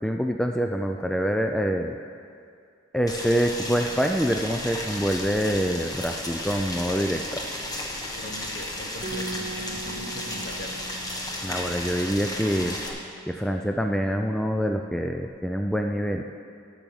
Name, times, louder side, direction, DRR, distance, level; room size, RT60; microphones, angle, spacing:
voice 1, 0.0-2.0 2.9-7.5 11.4-16.2, equal, 5° left, 4 dB, 0.3 m, -26 dB
Boiling, 3.1-12.9, left 1 dB, 20° left, 1.2 m, -34 dB
voice 2, 8.2-10.8, left 1 dB, 50° left, 4 dB, 1.0 m, -41 dB
Bass guitar, 9.0-13.7 14.0-15.3, right 2 dB, 40° right, 1.1 m, -42 dB
12.5 x 6.1 x 7.0 m, 2.3 s
head